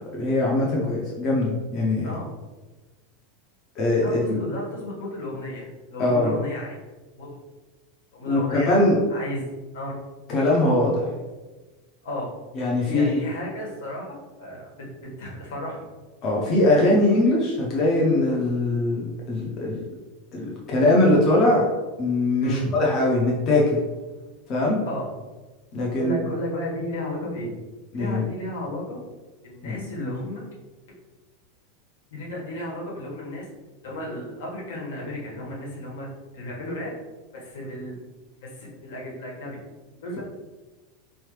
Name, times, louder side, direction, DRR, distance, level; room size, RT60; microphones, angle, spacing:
voice 1, 0.1-2.2 3.8-4.4 6.0-6.3 8.3-9.0 10.3-11.1 12.5-13.1 16.2-19.8 20.3-21.7 22.0-23.8 24.5-24.8 25.7-26.2 27.9-28.2 29.6-29.8 40.2-40.3, left 2 dB, 25° left, -4 dB, 0.6 m, -21 dB
voice 2, 4.0-6.7 7.2-7.4 8.1-8.7 9.1-9.5 9.7-10.0 12.0-12.3 12.8-14.9 15.2-15.9 22.4-22.7 24.8-25.1 26.0-27.5 27.9-29.0 29.4-30.4 32.1-33.5 33.8-36.1 36.3-36.9 37.3-37.9 38.4-39.6 40.0-40.2, left 1 dB, 80° left, -3 dB, 1.5 m, -33 dB
4.3 x 3.1 x 3.2 m, 1.2 s
supercardioid pair, 180°, 0 cm